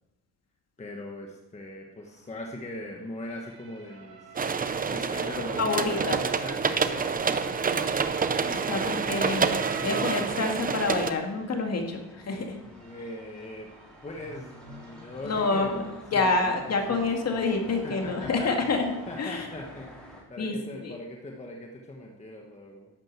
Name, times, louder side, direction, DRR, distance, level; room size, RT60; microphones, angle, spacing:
voice 1, 0.8-4.4 4.6-9.0 9.8-10.1 12.1-13.7 14.0-16.5 16.9-17.0 17.8-18.5 19.1-22.9, left 1 dB, 20° left, 0 dB, 1.2 m, -41 dB
Motor vehicle (road) / Siren, 2.0-19.4, right 5 dB, 70° right, 2.5 m, -50 dB
sound 1, 4.4-11.1, right 5 dB, 25° right, 0.6 m, -28 dB
voice 2, 5.6-6.2 8.5-9.6 9.8-12.6 15.2-15.8 16.1-19.5 20.4-20.5 20.8-21.0, left 3 dB, 40° left, 3 dB, 2.1 m, -27 dB
sound 2, 11.2-20.2, left 1 dB, ahead, 3.4 m, -48 dB
12.0 x 8.8 x 7.5 m, 1.0 s
cardioid pair, 160°, 38 cm